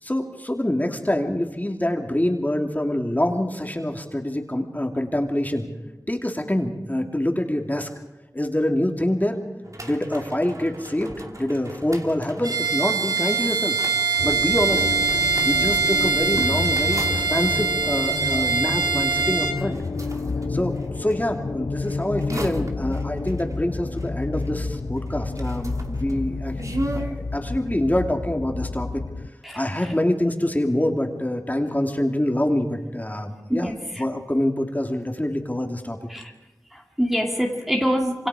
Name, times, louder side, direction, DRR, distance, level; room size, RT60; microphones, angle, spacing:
voice 1, 0.0-5.7 6.1-7.9 8.3-9.4 9.8-13.8 14.2-14.9 15.4-19.8 20.5-26.6 26.9-29.0 29.5-33.7 34.0-36.0, left 1 dB, 25° left, 3 dB, 2.7 m, -25 dB
sound 1, 9.6-21.2 21.8-24.7 25.0-27.2, right 1 dB, 45° right, 2.6 m, -38 dB
Bowed string instrument, 12.4-19.6, right 5 dB, 65° right, 2.3 m, -23 dB
sound 2, 14.2-29.3, left 3 dB, 65° left, 0.7 m, -30 dB
voice 2, 29.4-29.9 33.5-34.0 36.1-36.3 36.7-38.3, equal, 5° right, 0 dB, 2.3 m, -26 dB
26.5 x 26.0 x 4.9 m, 1.0 s
wide cardioid pair, 45°, 7 cm